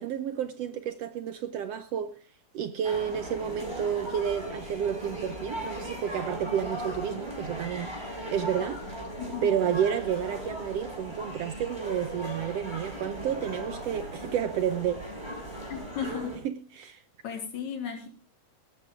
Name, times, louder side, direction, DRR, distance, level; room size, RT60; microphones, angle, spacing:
voice 1, 0.0-2.2 2.5-8.8 9.4-15.0 16.0-16.1 16.4-17.0, right 9 dB, 70° right, 1.6 m, -31 dB
sound 1, 2.8-16.4, equal, 10° right, 6.1 m, -38 dB
voice 2, 15.7-16.3 17.2-18.1, left 7 dB, 70° left, 4.0 m, -35 dB
17.0 x 13.0 x 3.7 m
omnidirectional pair, 3.5 m